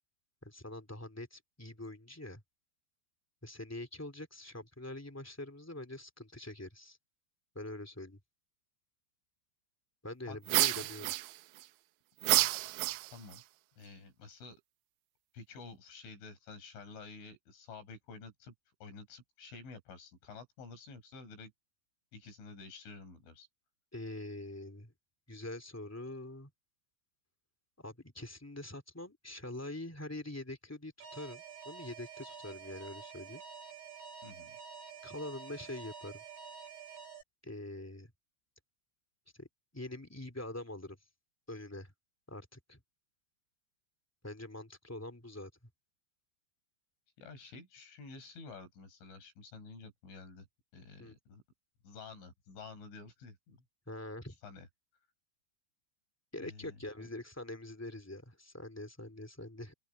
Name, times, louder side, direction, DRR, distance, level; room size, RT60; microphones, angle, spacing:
voice 1, 0.4-2.4 3.4-7.0 7.5-8.2 10.0-11.1 23.9-24.9 25.3-26.5 27.8-33.4 35.0-36.2 37.4-38.1 39.4-39.5 39.7-41.0 41.5-41.9 42.3-42.8 44.2-45.5 51.0-51.1 53.8-54.4 56.3-59.7, left 1 dB, 5° left, 1.7 m, -44 dB
voice 2, 10.3-10.9 13.1-13.4 13.8-14.6 15.3-18.5 18.8-21.5 22.1-23.5 34.2-34.5 47.2-50.5 50.7-51.4 51.8-53.6 54.4-54.7 56.4-57.1, left 4 dB, 85° left, 8.9 m, -50 dB
sound 1, 10.5-11.6 12.2-13.4, right 19 dB, 80° right, 2.9 m, -29 dB
Alarm, 31.0-37.2, right 6 dB, 60° right, 8.2 m, -49 dB
open air
omnidirectional pair, 5.4 m